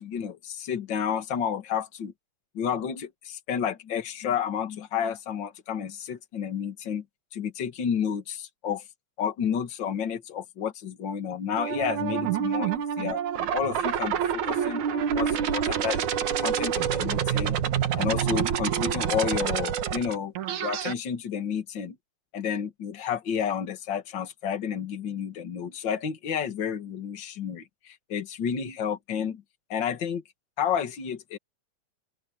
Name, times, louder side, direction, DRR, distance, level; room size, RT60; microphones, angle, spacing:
voice 1, 0.0-2.1 2.5-7.0 7.3-8.8 9.2-13.2 13.5-17.6 18.0-20.3 20.6-21.9 22.3-29.4 29.7-30.2 30.6-31.4, left 8 dB, 40° left, 1.8 m, -31 dB
sound 1, 11.6-20.9, right 9 dB, 60° right, 2.7 m, -27 dB
open air
omnidirectional pair, 4.3 m